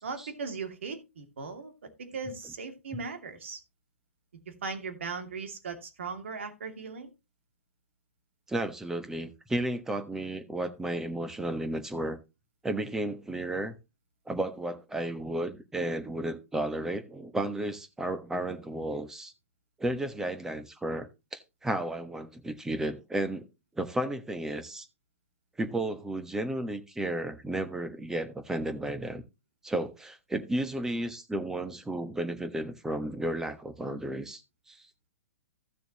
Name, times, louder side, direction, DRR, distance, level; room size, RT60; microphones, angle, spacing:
voice 1, 0.0-3.6 4.6-7.1, right 4 dB, 65° right, 2.5 m, -38 dB
voice 2, 8.5-12.2 12.6-13.7 14.3-19.3 19.8-23.5 23.8-24.9 25.6-29.2 29.6-34.4 34.7-34.9, right 1 dB, 5° right, 1.3 m, -33 dB
15.5 x 6.8 x 3.0 m
figure-of-eight pair, 115°, 7 cm